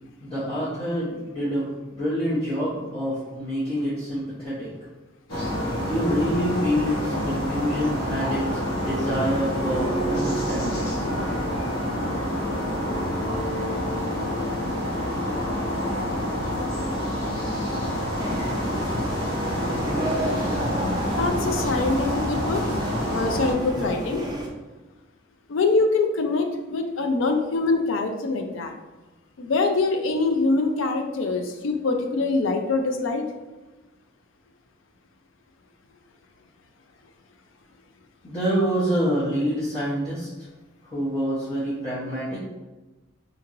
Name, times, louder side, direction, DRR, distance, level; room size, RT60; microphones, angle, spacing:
voice 1, 0.2-4.7 5.9-11.0 38.2-40.3 40.8-42.4, equal, 25° left, -10 dB, 0.8 m, -27 dB
sound 1, 5.3-23.5, equal, 90° left, 1.1 m, -27 dB
sound 2, 18.2-24.5, right 1 dB, 20° right, 0.4 m, -32 dB
voice 2, 21.1-22.6 23.1-24.2 25.5-28.7 29.4-33.3, left 3 dB, 65° left, 5 dB, 0.4 m, -24 dB
2.9 x 2.8 x 2.5 m, 1.2 s
head